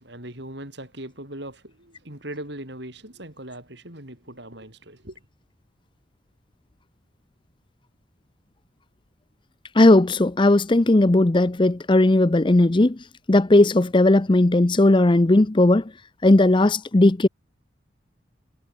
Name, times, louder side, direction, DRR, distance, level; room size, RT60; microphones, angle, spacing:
voice 1, 0.0-5.2, right 1 dB, 55° right, 7.3 m, -39 dB
voice 2, 9.7-13.0 13.3-15.9 16.2-17.3, left 2 dB, 25° left, 0.6 m, -17 dB
head